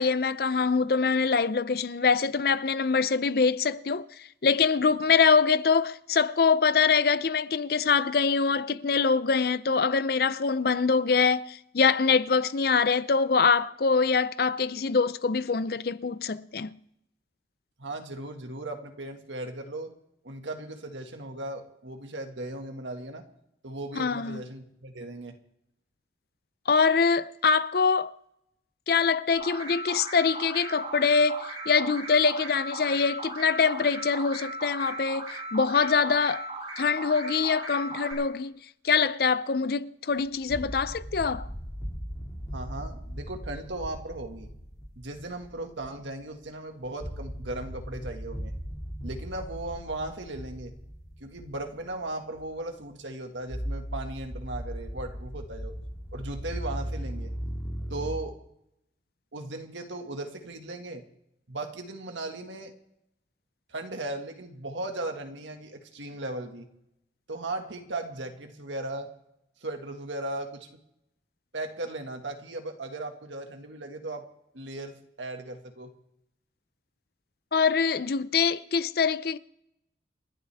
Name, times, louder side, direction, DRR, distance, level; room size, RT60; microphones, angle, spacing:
voice 1, 0.0-4.1 4.4-16.7 24.0-24.4 26.7-28.1 28.9-36.5 36.8-38.5 38.8-41.5 77.5-79.4, left 5 dB, 55° left, 0.5 m, -24 dB
voice 2, 17.8-19.9 20.2-23.2 23.6-25.4 42.5-44.5 45.0-48.5 49.0-50.7 51.2-55.7 56.1-57.3 57.9-58.4 59.3-61.0 61.5-62.7 63.7-66.7 67.3-69.1 69.6-70.7 71.5-74.3 74.5-75.9, right 2 dB, 90° right, 1.9 m, -37 dB
sound 1, 29.3-38.1, right 2 dB, 30° right, 6.2 m, -38 dB
sound 2, 40.3-46.4 46.8-52.1 52.3-52.5 53.5-58.1, equal, 20° left, 2.1 m, -38 dB
29.5 x 11.5 x 3.5 m
head